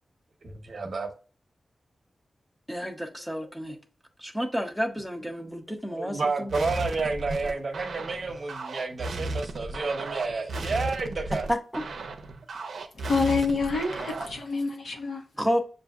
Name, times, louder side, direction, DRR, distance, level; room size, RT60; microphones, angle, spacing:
voice 1, 0.4-1.1 3.7-3.8 5.9-11.5 13.4-14.0, right 3 dB, 55° right, 0.9 m, -31 dB
voice 2, 2.7-3.8 4.2-6.5 11.5-11.8 15.4-15.6, equal, ahead, 0.7 m, -30 dB
sound 1, 6.5-14.4, right 2 dB, 85° right, 0.6 m, -35 dB
voice 3, 13.0-15.2, left 4 dB, 80° left, 1.1 m, -27 dB
6.7 x 2.6 x 2.3 m
wide cardioid pair, 115°, 0 cm